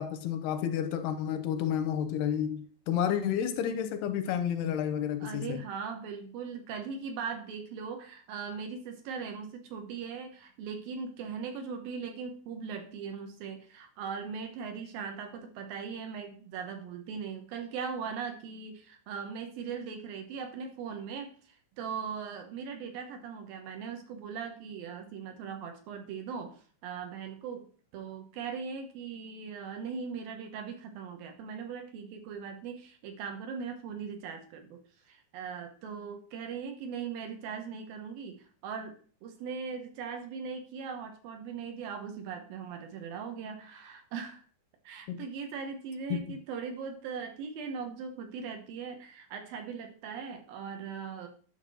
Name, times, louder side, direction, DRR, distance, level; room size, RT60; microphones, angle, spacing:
voice 1, 0.0-5.6 45.1-45.2 46.1-46.2, left 9 dB, 85° left, 2.7 m, -31 dB
voice 2, 5.2-34.8 35.1-44.4 44.8-51.3, right 6 dB, 70° right, 2.6 m, -39 dB
10.5 x 3.6 x 6.3 m
omnidirectional pair, 4.7 m